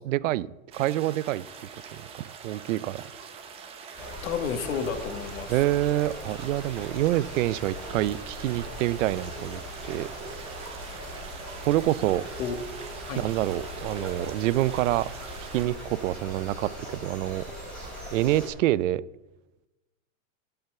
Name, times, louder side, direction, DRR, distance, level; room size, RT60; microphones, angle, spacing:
voice 1, 0.0-0.5 0.7-1.5 1.9-3.0 5.5-9.6 9.9-10.4 11.7-12.2 13.2-15.1 15.4-17.4 18.1-19.0, right 15 dB, 65° right, 0.5 m, -27 dB
sound 1, 0.7-15.7, right 6 dB, 15° right, 0.7 m, -44 dB
sound 2, 3.9-18.5, equal, 5° left, 4.7 m, -40 dB
voice 2, 4.2-5.6 12.4-12.5 13.1-13.3, left 7 dB, 75° left, 1.7 m, -31 dB
12.5 x 5.8 x 7.8 m
supercardioid pair, 170°, 41 cm